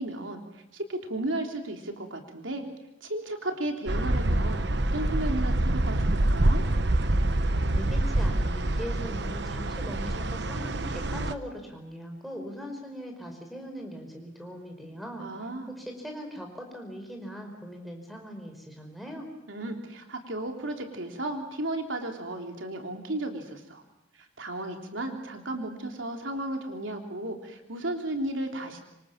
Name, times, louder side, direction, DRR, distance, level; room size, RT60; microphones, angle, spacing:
voice 1, 0.0-2.6 3.0-6.6 15.2-15.7 19.5-23.8 24.2-28.8, right 1 dB, 85° right, 3 dB, 3.4 m, -34 dB
sound 1, 3.9-11.3, right 1 dB, 60° right, 1.1 m, -26 dB
voice 2, 7.7-15.3 15.7-19.3, equal, ahead, 2 dB, 5.0 m, -40 dB
26.5 x 25.5 x 7.4 m, 0.90 s
head